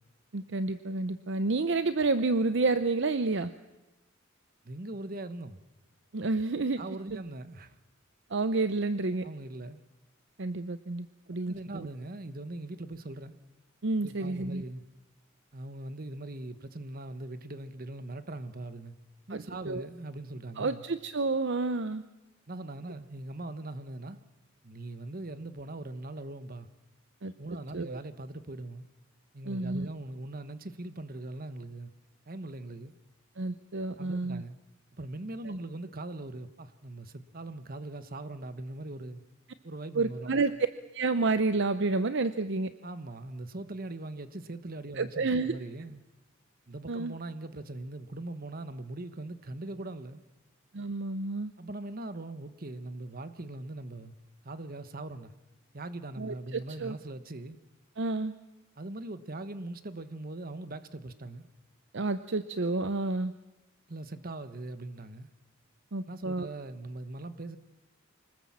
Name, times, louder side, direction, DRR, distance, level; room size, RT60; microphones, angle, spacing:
voice 1, 0.3-3.5 6.1-6.8 8.3-9.3 10.4-11.9 13.8-14.6 19.3-19.9 20.6-22.0 27.2-27.3 27.7-28.0 29.4-29.9 33.4-34.4 35.4-35.6 39.9-40.5 40.9-42.7 45.0-45.6 46.9-47.1 50.7-51.5 56.2-57.0 58.0-58.3 61.9-63.3 65.9-66.5, right 3 dB, 60° right, 0.7 m, -30 dB
voice 2, 4.6-5.6 6.8-7.8 9.2-9.8 11.5-13.4 14.0-14.8 15.5-18.9 19.3-20.8 22.5-24.2 24.6-26.7 27.4-28.9 29.3-31.9 32.3-32.9 34.0-34.5 35.0-39.2 39.6-40.4 42.8-46.0 46.7-50.2 51.6-54.2 54.4-55.3 55.7-57.6 58.8-61.5 63.9-65.3 66.1-67.6, right 2 dB, 45° right, 1.2 m, -41 dB
25.0 x 20.0 x 7.5 m
head